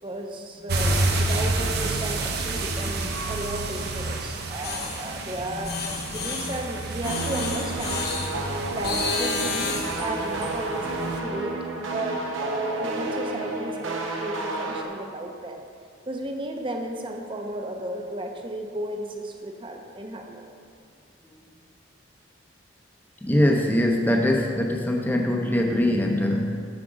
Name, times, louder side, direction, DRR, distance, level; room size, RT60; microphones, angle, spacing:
voice 1, 0.0-8.0 8.7-15.6 16.1-20.5, right 1 dB, 25° right, 3 dB, 0.7 m, -34 dB
sound 1, 0.7-11.2, right 2 dB, 55° right, 0.8 m, -30 dB
sound 2, 4.6-5.0 5.6-6.6 7.0-8.3 8.8-10.0, left 4 dB, 55° left, 1.0 m, -31 dB
voice 2, 5.5-6.0 6.4-6.6 23.2-26.7, left 1 dB, 10° left, 1 dB, 0.7 m, -23 dB
sound 3, 7.0-14.9, right 2 dB, 80° right, 0.9 m, -31 dB
8.7 x 4.9 x 6.2 m, 2.3 s
head